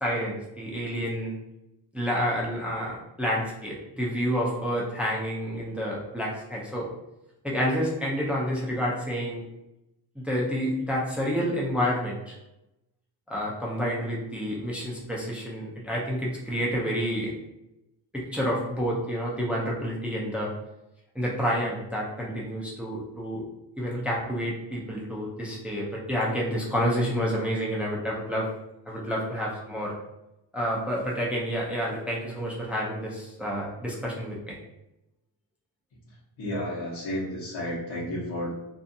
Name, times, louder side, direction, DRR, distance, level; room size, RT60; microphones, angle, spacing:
voice 1, 0.0-1.4 1.9-6.9 7.4-9.4 10.2-12.3 13.3-17.3 18.1-20.5 21.1-23.4 23.8-28.5 28.9-29.9 30.5-34.6, equal, 5° right, -4 dB, 0.4 m, -29 dB
voice 2, 36.0-38.5, equal, 70° left, -10 dB, 1.0 m, -32 dB
2.6 x 2.4 x 2.6 m, 0.91 s
wide cardioid pair, 145°, 45 cm